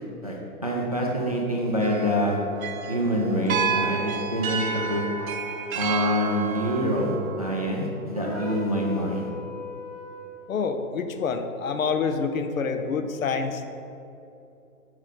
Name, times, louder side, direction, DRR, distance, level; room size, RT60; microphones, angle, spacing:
voice 1, 0.0-2.4 2.9-5.1 5.8-9.3, equal, 25° right, -1 dB, 0.4 m, -26 dB
sound 1, 1.8-8.1, right 5 dB, 65° right, 0.6 m, -31 dB
sound 2, 8.1-10.4, left 2 dB, ahead, 1.1 m, -38 dB
voice 2, 10.5-13.7, left 5 dB, 65° left, 8 dB, 0.8 m, -27 dB
6.5 x 4.8 x 5.7 m, 2.8 s
hypercardioid pair, 175°, 44 cm